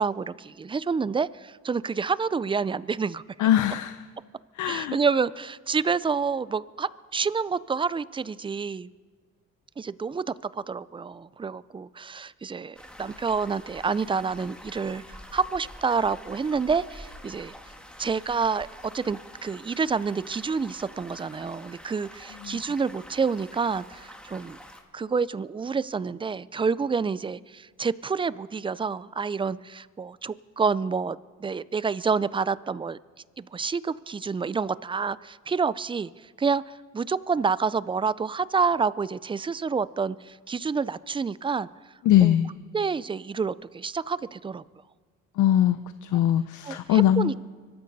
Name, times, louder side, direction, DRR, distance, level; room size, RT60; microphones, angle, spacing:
voice 1, 0.0-3.2 4.6-8.9 9.8-17.5 18.0-18.7 18.9-24.6 24.9-33.0 33.4-41.7 42.2-42.3 42.7-44.6 46.7-47.4, right 5 dB, 15° right, 18 dB, 0.4 m, -28 dB
voice 2, 3.4-4.0 4.5-5.0 22.4-22.6 42.0-42.5 45.4-47.3, left 11 dB, 80° left, 12 dB, 0.6 m, -22 dB
sound 1, 12.7-24.8, equal, 5° left, 1.8 m, -47 dB
24.5 x 13.5 x 4.1 m, 1.5 s
cardioid pair, 90°, 30 cm